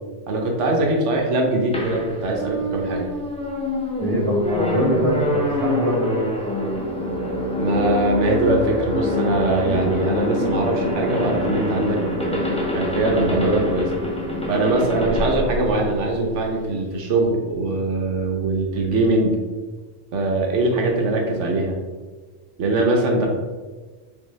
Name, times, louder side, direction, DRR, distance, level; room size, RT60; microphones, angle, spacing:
voice 1, 0.3-3.1 7.5-13.9 14.5-19.4 20.1-21.8 22.6-23.3, right 2 dB, 90° right, 1 dB, 1.1 m, -22 dB
sound 1, 1.7-16.5, left 1 dB, 10° left, 0.4 m, -25 dB
voice 2, 4.0-6.3, right 1 dB, 30° right, -3 dB, 0.9 m, -24 dB
4.0 x 3.4 x 3.1 m, 1.3 s
omnidirectional pair, 1.2 m